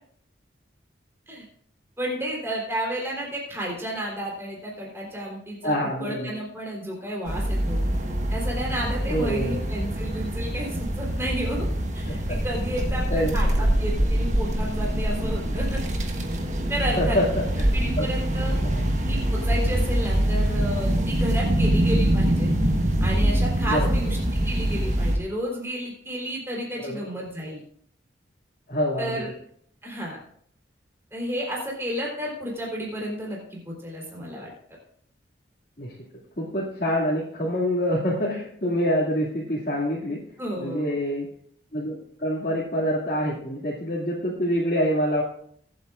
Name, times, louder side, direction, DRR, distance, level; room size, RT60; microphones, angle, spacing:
voice 1, 2.0-7.8 8.3-11.7 11.9-15.8 16.7-17.2 17.7-18.6 19.1-22.5 23.0-27.6 29.0-29.3 29.8-30.2 31.1-34.5 40.4-41.0, equal, 15° right, -3 dB, 3.8 m, -32 dB
voice 2, 5.6-6.3 9.1-9.6 12.3-12.4 13.1-13.4 17.0-17.3 18.0-18.1 18.6-19.0 23.7-23.9 26.8-27.1 28.7-29.3 35.8-35.9 36.4-40.2 40.6-41.3 41.7-41.9 42.2-45.2, equal, 50° left, -7 dB, 2.3 m, -26 dB
sound 1, 7.3-25.2, right 1 dB, 40° right, 1.3 m, -24 dB
22.5 x 8.2 x 2.5 m, 0.65 s
head